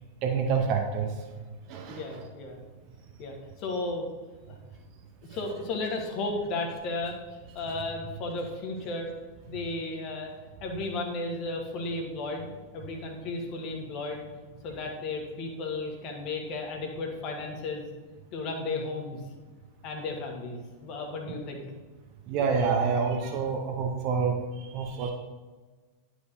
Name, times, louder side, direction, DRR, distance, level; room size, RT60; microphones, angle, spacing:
voice 1, 0.2-1.1 1.7-2.0 22.3-24.3 24.7-25.1, right 5 dB, 40° right, 3 dB, 0.8 m, -27 dB
voice 2, 1.9-2.6 3.2-4.1 4.5-4.6 5.3-9.1 9.5-10.3 10.6-12.5 12.7-14.2 14.6-17.8 18.3-19.2 19.8-21.6, left 2 dB, 40° left, 2 dB, 1.4 m, -34 dB
11.0 x 4.7 x 2.7 m, 1.3 s
figure-of-eight pair, 90°, 0 cm